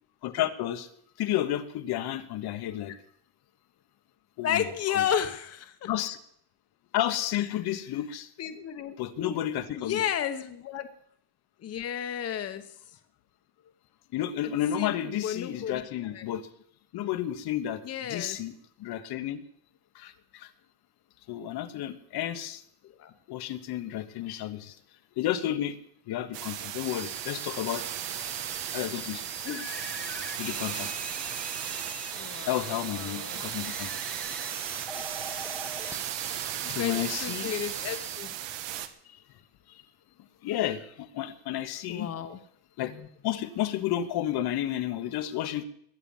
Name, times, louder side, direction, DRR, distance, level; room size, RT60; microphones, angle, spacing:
voice 1, 0.2-0.9 1.2-3.0 4.4-4.6 4.9-5.0 5.8-6.2 6.9-8.3 9.0-10.0 14.1-16.5 16.9-17.8 18.1-18.5 18.8-19.4 19.9-20.5 21.3-22.6 23.3-24.7 25.2-25.8 26.1-27.9 28.7-29.2 30.4-30.9 32.5-33.9 36.7-37.5 40.4-42.1 42.8-42.9 43.2-45.6, left 12 dB, 60° left, 9 dB, 1.3 m, -31 dB
voice 2, 4.4-5.9 7.4-7.5 8.4-9.4 9.8-10.9 11.6-13.0 14.4-14.5 14.8-15.8 16.1-16.3 17.8-18.4 22.8-23.1 29.4-29.9 32.1-33.4 35.8-38.4 41.9-42.4 42.8-43.1, left 9 dB, 35° left, 8 dB, 1.1 m, -33 dB
sound 1, 26.3-38.9, right 11 dB, 80° right, 1.7 m, -36 dB
sound 2, 26.8-38.2, equal, 5° left, 0.8 m, -43 dB
21.5 x 9.0 x 7.3 m, 0.66 s
cardioid pair, 180°, 43 cm